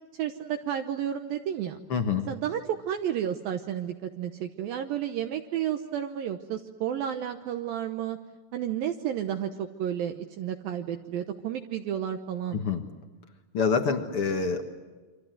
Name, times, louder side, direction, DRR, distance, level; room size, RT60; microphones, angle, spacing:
voice 1, 0.1-1.8 2.3-8.2 8.5-12.8, right 10 dB, 70° right, 6 dB, 2.5 m, -32 dB
voice 2, 1.9-2.2 12.5-12.8 13.5-14.6, left 5 dB, 60° left, 6 dB, 1.5 m, -26 dB
28.5 x 25.0 x 7.8 m, 1.3 s
omnidirectional pair, 4.8 m